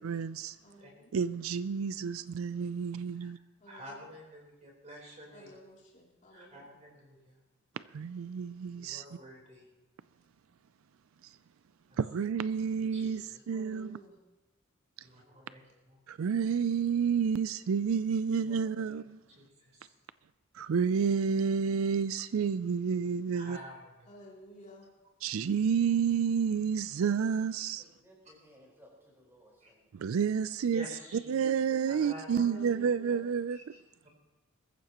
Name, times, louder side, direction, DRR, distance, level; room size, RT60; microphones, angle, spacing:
voice 1, 0.0-0.6 1.1-3.4 7.9-9.0 12.0-14.0 16.1-19.2 20.5-23.6 25.2-27.8 29.9-30.9 31.3-33.6, right 6 dB, 80° right, 0.4 m, -30 dB
voice 2, 0.6-1.2 3.6-4.1 5.3-6.7 13.5-14.2 24.1-24.9 32.3-33.2, equal, 35° left, 3.0 m, -52 dB
voice 3, 3.7-5.6 6.3-7.4 8.8-9.7 11.9-12.0 12.8-13.4 15.0-16.0 18.3-18.6 19.4-19.9 23.3-24.1 29.6-29.7 30.6-31.3 31.9-32.6 33.5-34.1, equal, 35° right, 4.0 m, -49 dB
voice 4, 15.1-15.7 16.5-16.6 28.0-29.9, equal, 10° right, 4.8 m, -60 dB
22.0 x 14.5 x 3.0 m
head